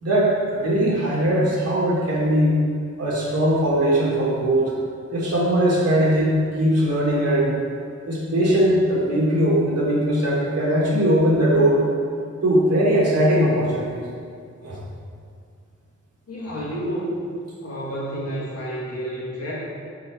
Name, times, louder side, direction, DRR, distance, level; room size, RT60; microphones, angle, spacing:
voice 1, 0.0-2.6 3.0-4.7 5.1-7.5 8.1-11.8 12.4-14.0 14.6-14.8, right 1 dB, 55° right, -6 dB, 1.6 m, -20 dB
voice 2, 16.3-17.3 17.6-19.5, equal, 55° left, -7 dB, 1.6 m, -30 dB
5.8 x 4.4 x 4.6 m, 2.2 s
wide cardioid pair, 155°, 30 cm